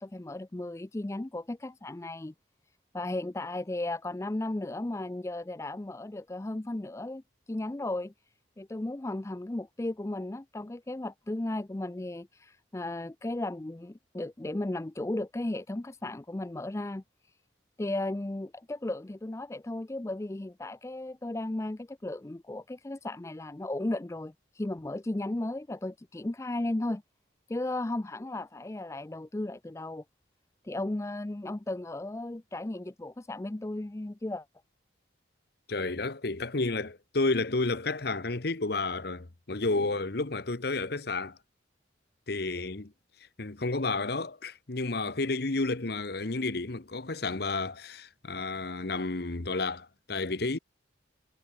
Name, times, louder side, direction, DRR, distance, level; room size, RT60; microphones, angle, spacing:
voice 1, 0.0-2.3 2.9-7.2 7.5-8.1 8.6-17.0 17.8-27.0 27.5-30.0 30.6-34.5, left 1 dB, 15° left, 0.4 m, -35 dB
voice 2, 35.7-41.4 42.3-42.9 43.4-50.6, left 3 dB, 55° left, 1.1 m, -31 dB
head